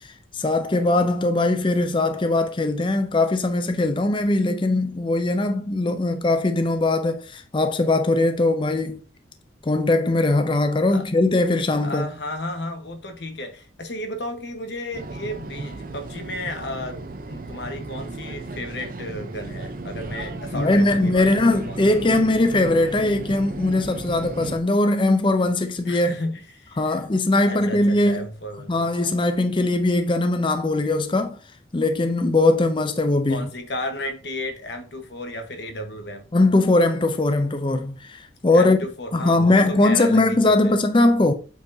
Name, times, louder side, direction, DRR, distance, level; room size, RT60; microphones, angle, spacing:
voice 1, 0.0-9.0 9.6-12.1 20.5-26.1 26.8-28.3 28.7-31.4 31.7-33.5 36.3-38.8 39.1-41.3, left 2 dB, 25° left, 0.5 m, -20 dB
voice 2, 11.8-17.0 17.3-21.8 25.8-27.0 27.4-28.8 33.3-36.3 38.5-40.8, left 1 dB, 65° left, 1.2 m, -33 dB
sound 1, 14.9-24.6, right 2 dB, 50° right, 0.7 m, -35 dB
8.1 x 4.4 x 2.7 m
head